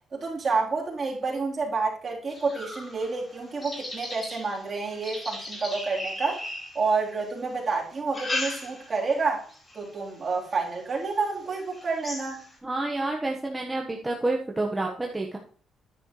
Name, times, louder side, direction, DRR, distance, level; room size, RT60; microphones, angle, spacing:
voice 1, 0.1-6.4 6.7-9.5 9.7-12.4, right 4 dB, 40° right, 3.6 m, -29 dB
sound 1, 2.3-7.3 7.9-9.1 9.5-9.9 10.5-10.6 11.0-11.1 11.5-12.6, left 1 dB, 25° left, 4.7 m, -37 dB
voice 2, 12.6-15.4, right 2 dB, 15° right, 1.3 m, -29 dB
9.7 x 9.7 x 3.2 m
cardioid pair, 90°, 0 cm